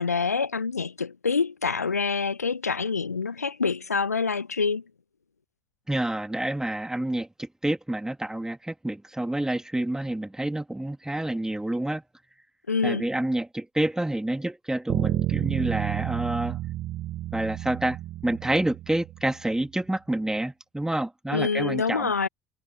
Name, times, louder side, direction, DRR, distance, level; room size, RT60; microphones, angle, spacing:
voice 1, 0.0-4.8 12.7-13.1 21.3-22.3, left 5 dB, 85° left, 0.7 m, -26 dB
voice 2, 5.9-12.0 12.8-16.6 17.3-22.1, right 1 dB, 5° right, 2.5 m, -28 dB
Bass guitar, 14.9-19.3, right 15 dB, 55° right, 3.1 m, -30 dB
figure-of-eight pair, 60°, 8 cm